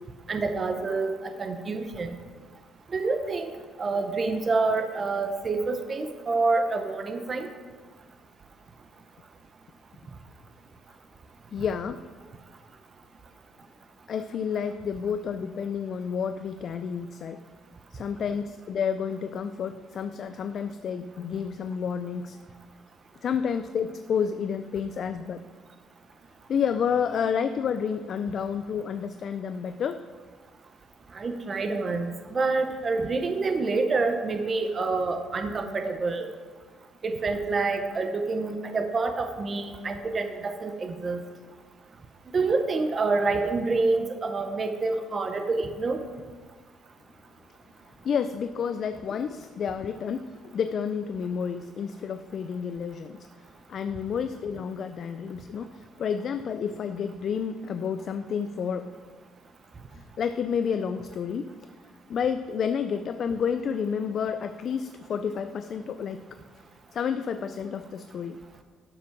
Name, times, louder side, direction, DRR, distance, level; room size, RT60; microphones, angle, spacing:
voice 1, 0.3-1.1 1.4-2.2 2.9-3.5 3.8-7.5 31.1-36.3 37.0-41.2 42.3-46.0, right 3 dB, 30° right, 6 dB, 0.8 m, -27 dB
voice 2, 11.5-12.0 14.1-17.4 17.9-22.4 23.2-25.4 26.5-30.0 48.0-53.3 53.7-58.9 59.9-61.5 62.1-66.2 66.9-68.4, left 7 dB, 45° left, 10 dB, 0.4 m, -30 dB
12.0 x 6.0 x 6.0 m, 1.5 s
cardioid pair, 150°, 0 cm